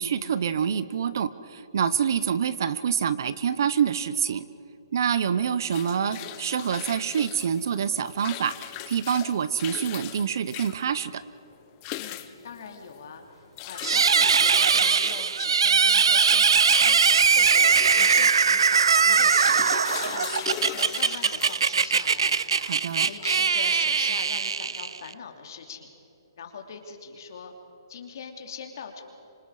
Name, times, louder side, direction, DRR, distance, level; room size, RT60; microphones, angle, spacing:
voice 1, 0.0-4.5 4.9-11.2 22.5-23.1, right 7 dB, 50° right, 15 dB, 0.8 m, -26 dB
sound 1, 5.4-23.9, left 13 dB, 20° left, 0.7 m, -40 dB
voice 2, 11.9-19.6 20.1-22.3 23.1-25.9 26.4-27.5 27.9-29.0, left 6 dB, 45° left, 4 dB, 2.9 m, -41 dB
sound 2, 13.8-25.1, right 6 dB, 85° right, 0.5 m, -21 dB
26.5 x 26.0 x 4.9 m, 3.0 s
hypercardioid pair, 170°, 3 cm